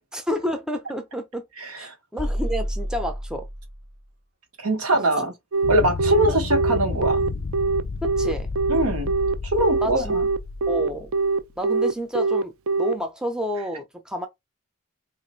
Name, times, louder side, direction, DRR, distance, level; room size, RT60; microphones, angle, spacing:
voice 1, 0.1-1.4 1.8-3.5 6.3-6.4 8.2-8.5 9.8-10.2 10.7-11.1 11.6-12.5 12.8-14.3, equal, 5° right, 0.4 m, -29 dB
voice 2, 1.6-1.9 4.6-5.3 5.7-7.2 8.7-9.1 9.4-10.3, right 1 dB, 85° right, 1.2 m, -22 dB
sound 1, 2.2-4.0, equal, 50° right, 1.0 m, -29 dB
Telephone, 5.5-12.9, right 4 dB, 65° right, 0.4 m, -22 dB
sound 2, 5.6-11.4, left 3 dB, 55° left, 0.5 m, -31 dB
2.9 x 2.4 x 4.3 m
head